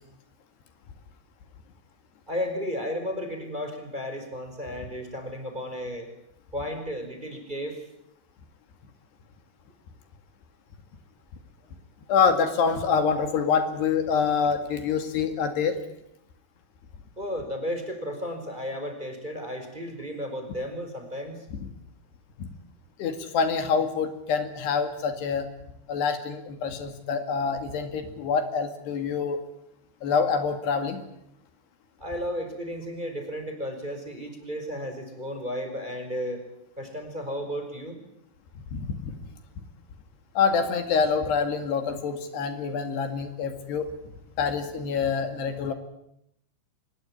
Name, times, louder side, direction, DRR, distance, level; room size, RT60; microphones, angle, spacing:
voice 1, 2.3-6.1 6.5-7.8 17.2-21.4 32.0-36.4 36.8-38.0, equal, 10° right, 5 dB, 4.8 m, -33 dB
voice 2, 12.1-15.8 22.4-22.5 23.0-25.5 25.9-29.4 30.0-31.0 38.7-39.1 40.4-43.9 44.4-45.7, left 6 dB, 75° left, 8 dB, 4.3 m, -26 dB
25.0 x 21.5 x 9.9 m, 0.78 s
omnidirectional pair, 4.9 m